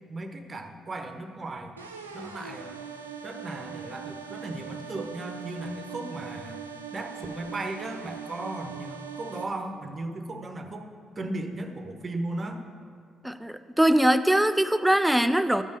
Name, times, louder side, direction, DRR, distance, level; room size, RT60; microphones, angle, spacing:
voice 1, 0.1-1.7 2.1-2.8 3.2-6.6 6.9-10.9 11.2-12.6, right 2 dB, 35° right, 6 dB, 0.9 m, -36 dB
sound 1, 1.8-9.4, right 7 dB, 90° right, 0.4 m, -41 dB
voice 2, 13.2-15.6, right 1 dB, 5° right, 11 dB, 0.4 m, -22 dB
12.0 x 5.4 x 6.2 m, 2.1 s
figure-of-eight pair, 40°, 0 cm